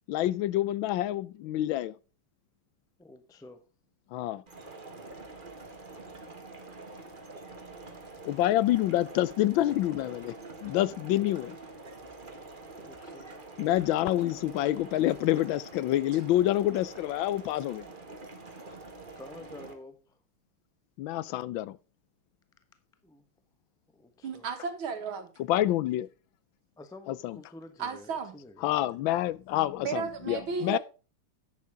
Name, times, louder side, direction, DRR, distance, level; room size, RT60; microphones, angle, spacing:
voice 1, 0.1-1.9 4.1-4.4 8.2-10.3 10.6-11.6 13.6-17.8 21.0-21.8 25.5-26.1 27.2-27.4 28.6-30.8, left 14 dB, 75° left, 1.3 m, -27 dB
voice 2, 3.0-3.7 12.8-13.3 19.1-20.2 23.0-23.3 23.9-24.5 26.8-28.8, left 2 dB, 5° left, 0.5 m, -49 dB
sound 1, 4.5-19.7, right 2 dB, 25° right, 1.7 m, -46 dB
voice 3, 24.2-25.3 27.8-28.4 29.8-30.8, right 5 dB, 75° right, 2.4 m, -34 dB
11.0 x 8.5 x 3.5 m
omnidirectional pair, 2.3 m